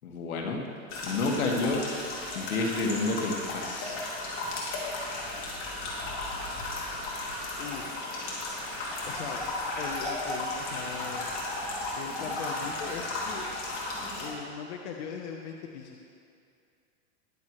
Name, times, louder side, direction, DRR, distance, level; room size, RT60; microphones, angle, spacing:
voice 1, 0.0-0.6 1.0-1.8 2.4-4.0, left 3 dB, 80° left, 0 dB, 2.1 m, -29 dB
sound 1, 0.9-14.3, left 2 dB, 30° left, 2.8 m, -35 dB
sound 2, 8.4-14.4, left 1 dB, 5° left, 1.8 m, -39 dB
voice 2, 9.0-11.2 12.0-13.6 14.2-16.0, left 6 dB, 55° left, 1 dB, 1.1 m, -39 dB
21.0 x 7.4 x 3.2 m, 2.4 s
supercardioid pair, 145°, 41 cm